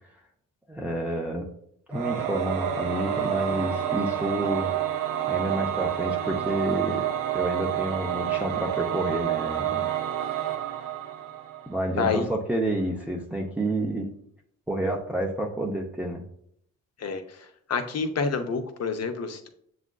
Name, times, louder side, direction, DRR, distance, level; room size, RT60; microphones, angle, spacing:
voice 1, 0.7-1.5 1.9-4.7 5.3-9.9 11.7-14.1 14.7-16.2, right 1 dB, 5° right, -1 dB, 0.6 m, -29 dB
Singing / Musical instrument, 1.9-11.9, right 11 dB, 65° right, 0.6 m, -29 dB
voice 2, 17.7-19.5, left 5 dB, 45° left, 7 dB, 0.7 m, -28 dB
6.9 x 2.5 x 2.2 m, 0.69 s
supercardioid pair, 55°, 35 cm